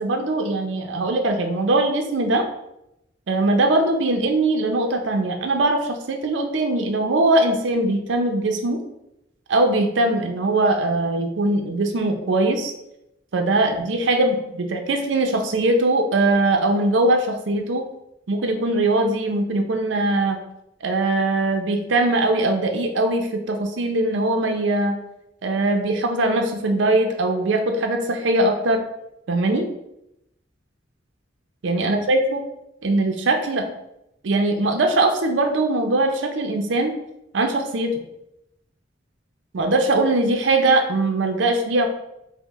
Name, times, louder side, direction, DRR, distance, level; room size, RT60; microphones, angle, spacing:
voice 1, 0.0-2.4 3.3-8.8 9.5-12.7 13.3-17.9 18.3-20.4 20.8-25.0 25.4-28.8 29.3-29.7 31.6-32.4 32.8-33.7 34.2-36.9 37.3-38.0 39.5-41.9, right 2 dB, 80° right, 4 dB, 0.5 m, -21 dB
5.5 x 2.1 x 3.0 m, 0.85 s
head